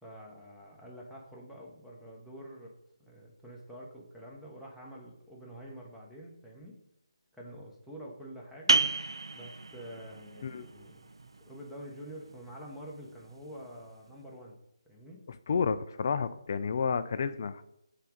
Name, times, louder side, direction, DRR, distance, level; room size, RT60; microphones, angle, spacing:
voice 1, 0.0-2.7 3.0-6.8 7.3-8.8 9.3-14.6 14.9-15.3, equal, ahead, -5 dB, 0.8 m, -47 dB
sound 1, 8.7-14.0, right 3 dB, 65° right, 0.4 m, -33 dB
voice 2, 15.5-17.6, left 6 dB, 35° left, 12 dB, 0.3 m, -30 dB
5.5 x 3.7 x 5.0 m, 0.82 s
figure-of-eight pair, 150°, 3 cm